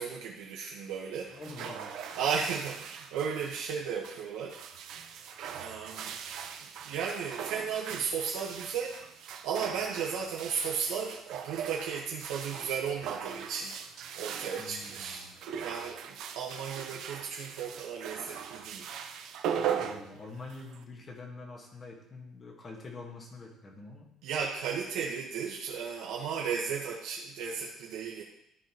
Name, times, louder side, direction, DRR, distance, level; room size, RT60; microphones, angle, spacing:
voice 1, 0.0-1.4 2.1-4.6 5.5-6.1 6.6-9.1 9.4-13.7 14.2-15.2 15.6-16.0 16.3-18.9 24.2-28.2, right 6 dB, 90° right, -2 dB, 1.2 m, -35 dB
sound 1, 1.2-20.8, right 8 dB, 60° right, 0.7 m, -40 dB
voice 2, 1.3-2.0 5.8-6.1 14.6-15.3 19.5-24.1, left 3 dB, 25° left, 1 dB, 1.5 m, -46 dB
13.5 x 5.2 x 3.0 m, 0.79 s
cardioid pair, 165°, 0 cm